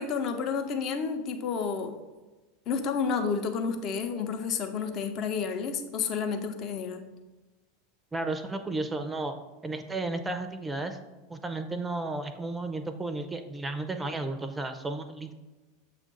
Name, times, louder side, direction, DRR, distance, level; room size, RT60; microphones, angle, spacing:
voice 1, 0.0-1.9 2.7-7.0, left 5 dB, 45° left, 6 dB, 0.7 m, -30 dB
voice 2, 8.1-9.4 9.6-11.0 11.3-15.3, right 2 dB, 15° right, 8 dB, 0.6 m, -33 dB
7.3 x 2.5 x 5.3 m, 1.2 s
hypercardioid pair, 85°, 0 cm